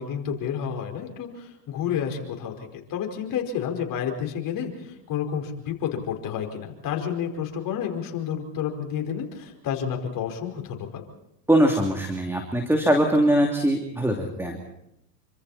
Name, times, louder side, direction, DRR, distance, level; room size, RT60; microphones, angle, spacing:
voice 1, 0.0-11.0, left 8 dB, 45° left, 2 dB, 5.0 m, -30 dB
voice 2, 11.5-14.6, right 1 dB, 5° right, 2 dB, 3.0 m, -22 dB
28.0 x 25.5 x 4.3 m, 0.81 s
hypercardioid pair, 90°, 48 cm